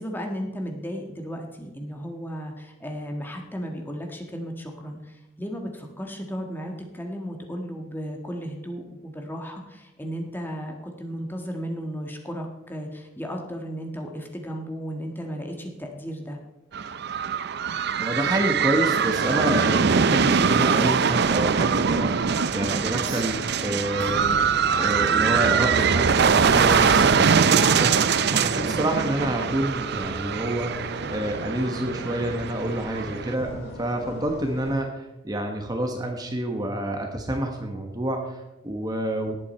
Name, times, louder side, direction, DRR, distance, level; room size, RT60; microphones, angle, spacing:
voice 1, 0.0-16.4, equal, 10° left, 2 dB, 1.6 m, -34 dB
sound 1, 16.7-33.3, right 6 dB, 55° right, 0.5 m, -22 dB
voice 2, 18.0-39.4, right 1 dB, 20° right, 3 dB, 1.2 m, -28 dB
sound 2, 20.6-34.7, left 1 dB, 60° left, 5.2 m, -38 dB
sound 3, 23.0-26.1, right 1 dB, 85° right, 3.7 m, -40 dB
18.0 x 8.6 x 4.4 m, 0.98 s
head